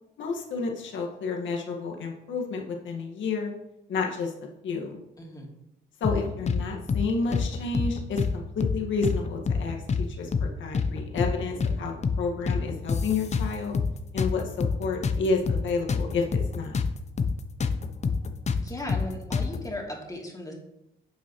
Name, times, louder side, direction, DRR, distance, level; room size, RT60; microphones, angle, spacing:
voice 1, 0.2-3.5 3.9-4.3 4.6-5.0 6.0-13.7 14.1-16.8, left 4 dB, 70° left, 1 dB, 1.8 m, -30 dB
voice 2, 5.2-5.5 18.6-20.5, left 1 dB, 20° left, -1 dB, 2.6 m, -37 dB
sound 1, 6.0-6.6 6.9-7.1 7.3-8.3 8.6-8.8 9.0-10.1 10.3-10.5 10.7-11.8 12.0-12.2 12.5-13.9 14.2-16.9 17.2-17.3 17.6-19.6, left 5 dB, 35° left, 0.8 m, -26 dB
11.0 x 7.2 x 3.2 m, 0.85 s
cardioid pair, 90°, 20 cm